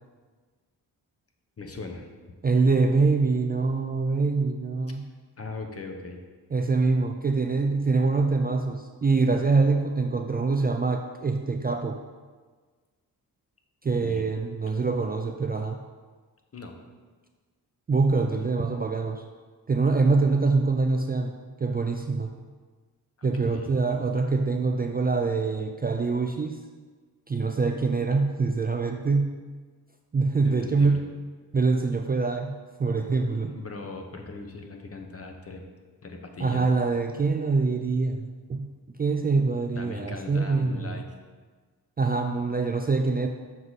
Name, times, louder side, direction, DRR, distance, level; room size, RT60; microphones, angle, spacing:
voice 1, 1.6-2.1 5.4-6.2 14.0-14.2 14.7-14.8 16.5-16.7 23.2-23.7 30.4-31.0 33.5-35.6 36.0-36.7 39.8-41.1, left 3 dB, 40° left, 4 dB, 0.9 m, -39 dB
voice 2, 2.4-5.0 6.5-12.0 13.8-15.8 17.9-19.2 19.7-21.3 21.6-22.4 23.2-26.6 27.3-29.3 30.1-31.0 31.5-33.6 36.4-38.7 39.0-41.0 42.0-43.3, right 4 dB, 25° right, 4 dB, 0.3 m, -24 dB
6.4 x 4.7 x 4.1 m, 1.4 s
cardioid pair, 75°, 38 cm